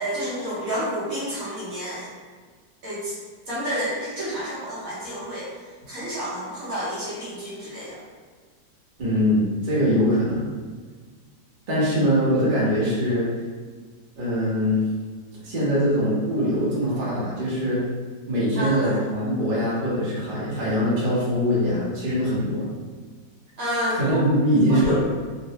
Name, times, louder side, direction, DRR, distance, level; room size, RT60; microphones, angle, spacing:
voice 1, 0.0-2.1 2.8-3.2 3.5-5.5 5.9-8.0 18.5-19.0 23.6-24.2 24.7-24.9, equal, 60° right, -8 dB, 1.1 m, -30 dB
voice 2, 9.0-10.4 11.7-13.3 14.2-14.8 15.4-17.8 18.3-22.7 23.9-24.9, equal, 40° right, -8 dB, 0.8 m, -22 dB
3.8 x 2.1 x 2.7 m, 1.5 s
omnidirectional pair, 1.9 m